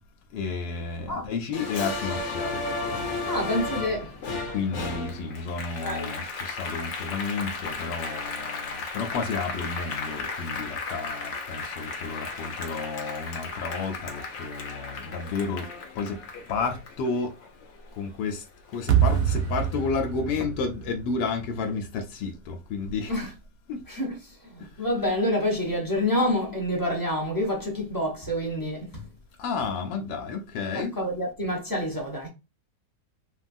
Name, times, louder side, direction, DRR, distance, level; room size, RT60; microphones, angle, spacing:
voice 1, 0.3-2.6 4.5-15.7 16.0-16.2 16.5-17.3 18.0-18.4 18.7-23.1 23.7-23.8 29.4-30.9, left 4 dB, 85° left, 1.2 m, -31 dB
Applause, 1.5-18.3 18.7-19.9, left 3 dB, 60° left, 0.8 m, -34 dB
voice 2, 3.3-4.1 5.8-6.1 23.1-23.3 23.9-29.1 30.7-32.3, left 1 dB, 25° left, 0.4 m, -28 dB
sound 1, 18.9-22.0, right 9 dB, 70° right, 0.9 m, -26 dB
3.1 x 2.3 x 2.5 m
omnidirectional pair, 1.8 m